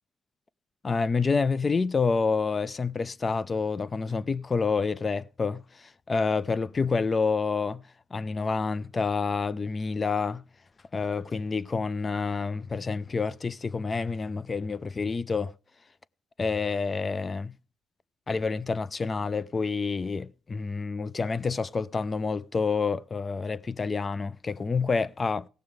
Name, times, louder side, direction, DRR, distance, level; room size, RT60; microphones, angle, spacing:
voice 1, 0.8-7.8 8.1-10.4 10.9-15.5 16.4-17.5 18.3-25.5, left 4 dB, 30° left, 0.6 m, -28 dB
17.5 x 6.6 x 5.0 m
cardioid pair, 90°, 0 cm